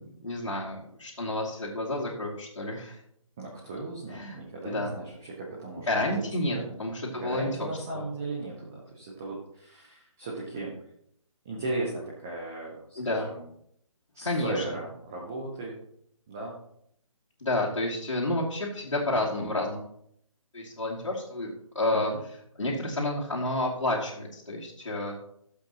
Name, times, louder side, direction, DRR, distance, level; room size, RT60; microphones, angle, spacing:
voice 1, 0.0-3.0 4.1-4.4 4.6-4.9 5.9-7.7 7.9-8.0 13.0-13.3 14.2-14.6 17.4-19.8 20.5-22.1 22.6-25.2, left 1 dB, 60° left, -6 dB, 2.4 m, -30 dB
voice 2, 3.4-6.2 6.5-6.8 7.1-10.7 11.4-13.5 14.1-15.8 16.3-16.6 21.9-22.2, right 2 dB, 5° right, -3 dB, 0.3 m, -37 dB
14.0 x 7.4 x 2.9 m, 0.71 s
figure-of-eight pair, 145°, 18 cm